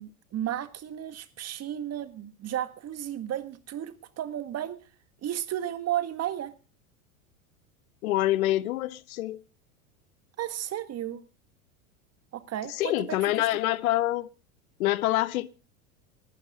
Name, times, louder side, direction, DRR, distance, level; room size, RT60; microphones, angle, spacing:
voice 1, 0.0-4.8 5.2-6.5 10.4-11.2 12.3-13.1 13.4-13.5, right 11 dB, 35° right, 1.8 m, -33 dB
voice 2, 8.0-9.4 12.7-14.3 14.8-15.5, left 16 dB, 75° left, 1.0 m, -26 dB
19.5 x 12.0 x 3.7 m
hypercardioid pair, 100°, 42 cm